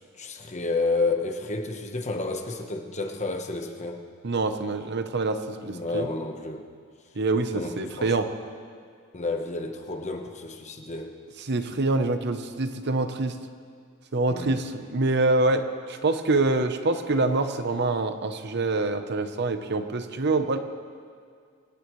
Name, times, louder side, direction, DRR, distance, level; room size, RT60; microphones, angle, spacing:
voice 1, 0.2-4.0 5.7-6.6 7.5-8.2 9.1-11.1 14.3-14.5, left 3 dB, 35° left, 4 dB, 1.2 m, -30 dB
voice 2, 4.2-6.1 7.2-8.3 11.4-13.3 14.1-20.6, right 2 dB, 55° right, 8 dB, 0.9 m, -25 dB
25.0 x 17.0 x 3.2 m, 2.1 s
head